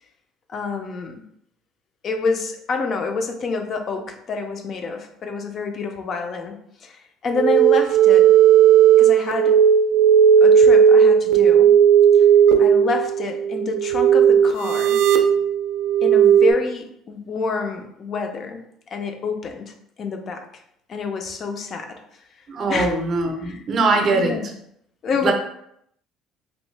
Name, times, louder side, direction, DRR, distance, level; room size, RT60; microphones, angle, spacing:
voice 1, 0.5-1.2 2.0-8.3 9.0-9.5 10.4-11.7 12.1-12.2 12.6-15.0 16.0-18.6 18.9-20.5 20.9-22.0 22.7-22.9 23.4-23.6 24.1-24.5 25.0-25.3, left 4 dB, 35° left, 5 dB, 0.4 m, -27 dB
sound 1, 7.3-16.5, right 8 dB, 80° right, 0.4 m, -14 dB
voice 2, 22.5-24.4 25.2-25.3, right 3 dB, 35° right, 3 dB, 0.6 m, -21 dB
3.0 x 2.6 x 3.2 m, 0.73 s
cardioid pair, 160°, 0 cm